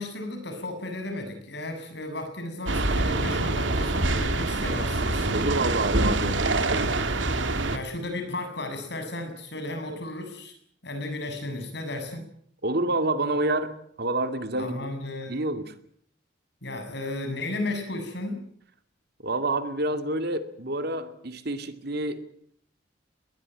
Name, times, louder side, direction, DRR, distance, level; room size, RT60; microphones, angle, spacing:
voice 1, 0.0-5.4 7.7-10.6 10.8-12.2 14.6-15.4 16.6-18.5, left 2 dB, 60° left, 6 dB, 7.3 m, -34 dB
sound 1, 2.7-7.8, right 2 dB, 75° right, 2.5 m, -25 dB
voice 2, 5.3-7.1 12.6-13.7 14.0-14.9 15.3-15.7 19.2-22.2, right 2 dB, 55° right, 9 dB, 2.4 m, -28 dB
21.0 x 20.5 x 9.1 m, 0.66 s
head